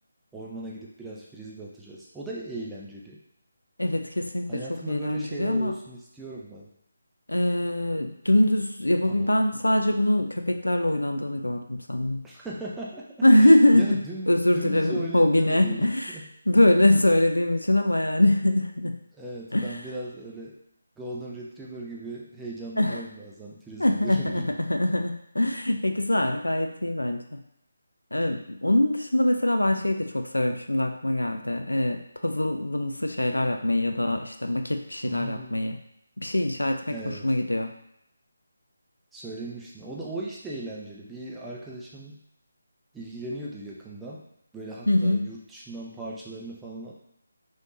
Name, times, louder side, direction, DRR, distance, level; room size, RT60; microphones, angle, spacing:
voice 1, 0.3-3.2 4.5-6.7 9.0-9.3 12.2-16.3 19.1-20.6 21.0-24.6 35.0-35.6 36.9-37.3 39.1-42.2 42.9-44.2 44.5-46.9, right 2 dB, 5° right, -5 dB, 0.5 m, -38 dB
voice 2, 3.8-5.7 7.3-12.3 13.2-14.0 14.3-16.2 16.5-19.0 19.5-19.8 22.8-23.0 23.8-27.4 28.1-35.8 36.2-37.7 44.9-45.3, left 1 dB, 90° left, 5 dB, 0.4 m, -23 dB
3.3 x 3.2 x 2.7 m, 0.78 s
figure-of-eight pair, 155°, 0 cm